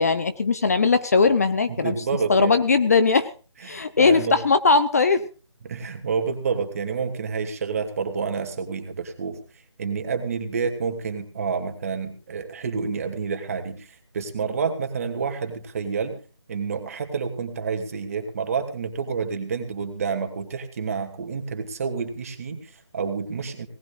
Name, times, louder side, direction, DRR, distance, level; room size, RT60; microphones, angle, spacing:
voice 1, 0.0-1.9 2.3-3.3 3.6-5.3, left 4 dB, 30° left, 13 dB, 0.7 m, -19 dB
voice 2, 1.7-2.5 3.6-4.4 5.6-9.4 9.8-16.2 16.5-23.7, right 5 dB, 30° right, 6 dB, 2.6 m, -29 dB
21.5 x 18.5 x 2.6 m, 0.36 s
figure-of-eight pair, 165°, 16 cm